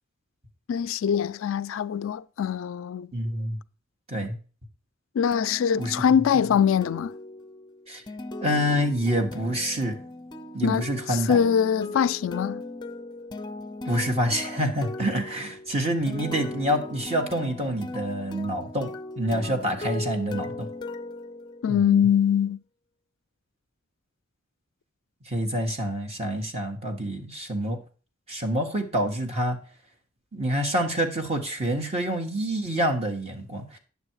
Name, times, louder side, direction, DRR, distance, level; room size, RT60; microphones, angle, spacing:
voice 1, 0.7-3.1 5.1-7.1 10.6-12.6 21.6-22.6, left 8 dB, 70° left, 0.3 m, -23 dB
voice 2, 3.1-3.6 4.1-4.4 5.8-5.9 7.9-8.0 8.4-10.0 10.5-11.4 13.9-20.7 21.7-22.0 25.3-27.8 28.3-29.6 30.3-33.8, equal, 30° right, 1.6 m, -27 dB
sound 1, 5.3-22.0, left 2 dB, 20° left, 0.6 m, -38 dB
9.7 x 7.0 x 4.7 m
head